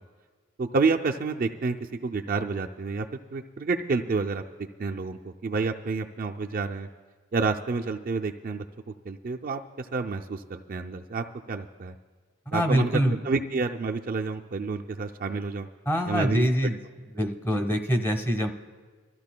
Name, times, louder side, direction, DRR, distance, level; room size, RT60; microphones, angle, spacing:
voice 1, 0.6-3.1 3.3-4.4 4.8-6.9 7.3-11.9 12.5-15.7 16.1-16.7 17.5-17.6, right 4 dB, 40° right, 3 dB, 0.4 m, -29 dB
voice 2, 12.5-13.2 15.9-16.8 17.2-18.5, equal, 10° left, 6 dB, 0.9 m, -24 dB
25.0 x 14.0 x 2.2 m, 1.5 s
head